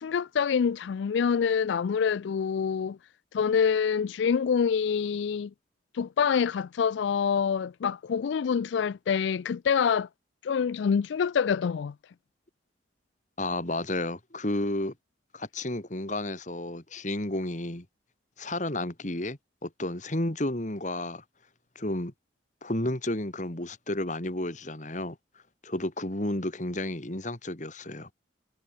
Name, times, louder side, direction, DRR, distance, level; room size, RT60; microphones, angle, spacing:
voice 1, 0.0-3.0 3.3-5.5 5.9-10.1 10.4-11.9, left 6 dB, 75° left, 0.4 m, -26 dB
voice 2, 13.4-14.9 15.3-17.9 18.4-21.2 21.8-22.1 22.6-25.2 25.6-28.1, left 1 dB, 40° left, 2.3 m, -32 dB
head